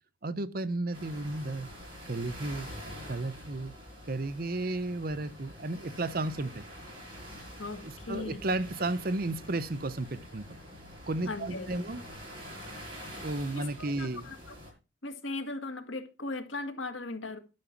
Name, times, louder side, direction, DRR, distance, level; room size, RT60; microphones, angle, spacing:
voice 1, 0.2-1.7 2.1-2.7 3.1-3.7 4.1-6.6 7.8-10.6 11.1-12.0 13.2-14.3, right 2 dB, 45° right, 0.8 m, -33 dB
sound 1, 0.9-14.7, equal, 25° right, 6.4 m, -46 dB
voice 2, 7.6-8.4 11.3-11.9 13.6-14.5 15.0-17.4, left 2 dB, 75° left, 1.9 m, -38 dB
12.0 x 6.0 x 5.8 m
head